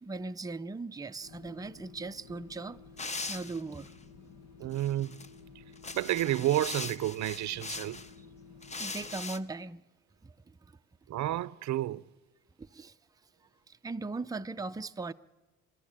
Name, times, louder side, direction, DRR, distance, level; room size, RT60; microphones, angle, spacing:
voice 1, 0.0-2.8 3.3-3.9 8.2-8.3 8.8-9.8 10.2-10.8 12.6-13.0 13.7-15.1, right 3 dB, 10° right, 0.6 m, -39 dB
sound 1, 1.2-9.2, left 5 dB, 65° left, 1.4 m, -53 dB
sound 2, 3.0-3.9 4.7-5.3 5.7-8.1 8.6-9.4, left 3 dB, 25° left, 0.9 m, -40 dB
voice 2, 4.6-5.1 5.9-8.0 11.1-12.0, right 13 dB, 65° right, 0.6 m, -30 dB
26.5 x 12.5 x 8.9 m
cardioid pair, 90°, 30 cm